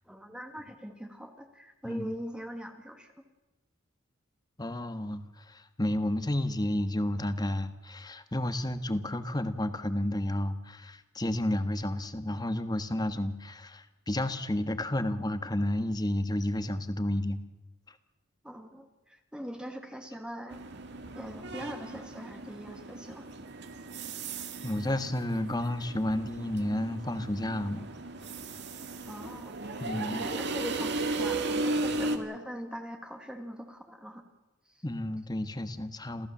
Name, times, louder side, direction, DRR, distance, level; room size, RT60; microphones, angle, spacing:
voice 1, 0.1-3.1 18.4-20.6 21.1-23.2 29.0-29.6 30.1-34.2 34.7-34.8, equal, 5° right, 4 dB, 1.8 m, -42 dB
voice 2, 4.6-17.4 24.6-27.9 29.8-30.2 34.8-36.3, left 1 dB, 20° left, 10 dB, 1.4 m, -31 dB
sound 1, 20.5-32.2, right 2 dB, 55° right, 2.1 m, -36 dB
28.0 x 15.5 x 7.3 m, 1.0 s
head